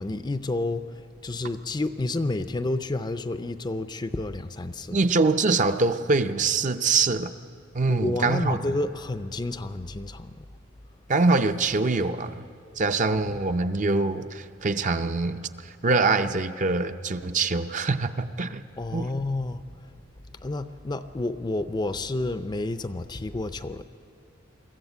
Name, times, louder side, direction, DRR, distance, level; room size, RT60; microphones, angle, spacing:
voice 1, 0.0-5.0 7.9-10.5 13.1-13.4 18.8-19.6 20.4-23.8, left 2 dB, 20° left, 11 dB, 0.5 m, -30 dB
voice 2, 4.9-7.3 7.7-8.6 11.1-12.5 12.8-18.6 18.9-19.1, right 3 dB, 40° right, 8 dB, 0.6 m, -24 dB
23.0 x 14.0 x 8.1 m, 2.6 s
head